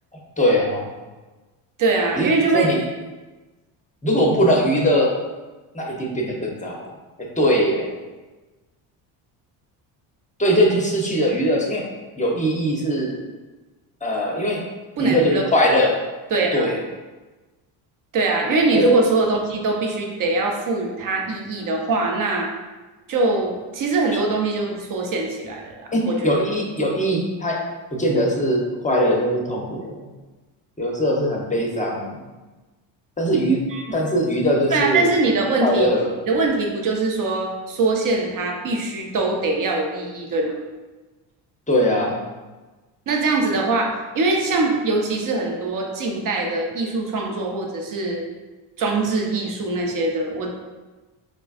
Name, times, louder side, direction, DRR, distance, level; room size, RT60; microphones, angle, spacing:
voice 1, 0.4-0.9 2.1-2.3 2.5-2.8 4.0-5.1 5.7-6.9 7.4-7.9 10.4-11.8 12.2-13.2 14.0-14.6 15.0-15.9 16.5-16.8 18.7-19.0 25.9-27.6 27.9-30.1 30.8-32.2 33.2-33.6 33.9-35.1 35.6-36.1 41.7-42.2, equal, 15° left, -1 dB, 0.7 m, -20 dB
voice 2, 1.8-2.7 15.0-15.4 16.3-16.7 18.1-22.5 23.1-26.3 33.7-34.0 34.7-35.9 36.3-40.6 43.1-48.2 48.8-50.5, right 3 dB, 40° right, 0 dB, 0.8 m, -22 dB
4.9 x 2.3 x 2.4 m, 1.2 s
supercardioid pair, 75°, 50 cm